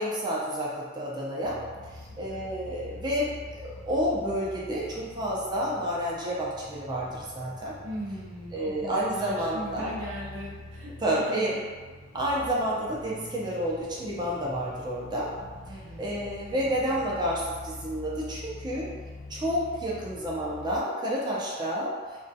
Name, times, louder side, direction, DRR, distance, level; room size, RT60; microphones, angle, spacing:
voice 1, 0.0-1.6 2.2-7.7 8.5-9.9 11.0-11.5 12.1-15.3 16.0-18.9 19.3-21.9, equal, 20° right, -6 dB, 0.5 m, -30 dB
sound 1, 1.4-20.8, left 2 dB, 55° left, 0.4 m, -45 dB
voice 2, 1.9-2.5 7.8-11.6 15.7-16.2, equal, 80° right, -5 dB, 0.7 m, -40 dB
2.3 x 2.2 x 2.6 m, 1.4 s
head